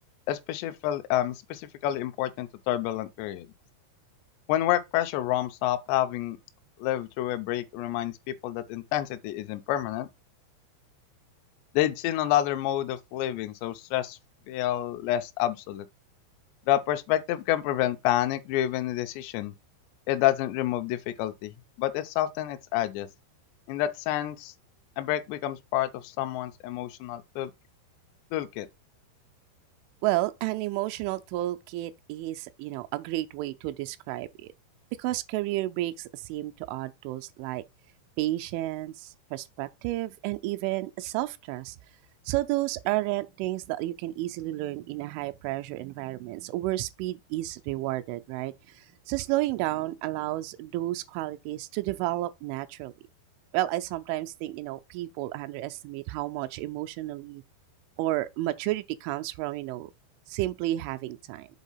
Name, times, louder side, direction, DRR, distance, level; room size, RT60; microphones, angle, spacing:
voice 1, 0.3-3.5 4.5-6.4 6.8-10.1 11.7-14.2 14.5-15.9 16.7-19.5 20.1-21.5 21.8-23.1 23.7-24.5 25.0-27.5 28.3-28.7, left 13 dB, 80° left, 2.8 m, -28 dB
voice 2, 30.0-34.5 35.0-37.6 38.2-41.8 42.3-52.9 53.5-57.4 58.0-59.9 60.3-61.5, right 16 dB, 85° right, 3.0 m, -31 dB
7.3 x 3.8 x 5.5 m
omnidirectional pair, 5.4 m